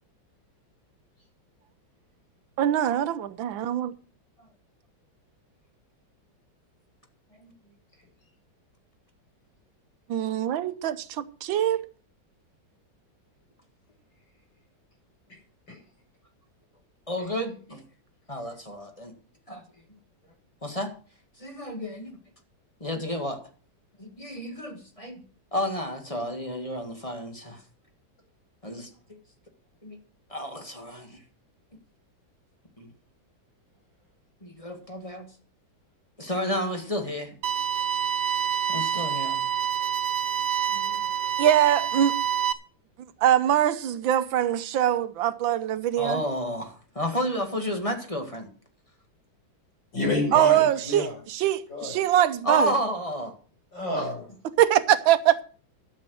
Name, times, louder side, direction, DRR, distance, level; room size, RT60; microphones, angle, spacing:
voice 1, 2.6-3.9 10.1-11.9 41.4-42.2 43.2-46.2 50.3-52.7 54.6-55.4, right 11 dB, 80° right, 1.6 m, -23 dB
voice 2, 17.1-17.8 18.3-19.1 19.5-19.6 20.6-20.9 21.4-22.2 22.8-23.4 24.0-25.2 25.5-27.6 28.6-29.2 29.8-30.0 30.3-31.2 32.8-32.9 34.4-35.3 36.2-37.4 38.7-39.4 40.7-41.0 46.0-48.5 52.4-53.3, equal, 20° left, 1.7 m, -31 dB
sound 1, 37.4-42.5, right 9 dB, 65° right, 1.2 m, -27 dB
voice 3, 49.9-51.1 51.7-51.9 53.7-54.3, left 1 dB, 65° left, 6.4 m, -28 dB
12.0 x 7.5 x 6.3 m
omnidirectional pair, 2.1 m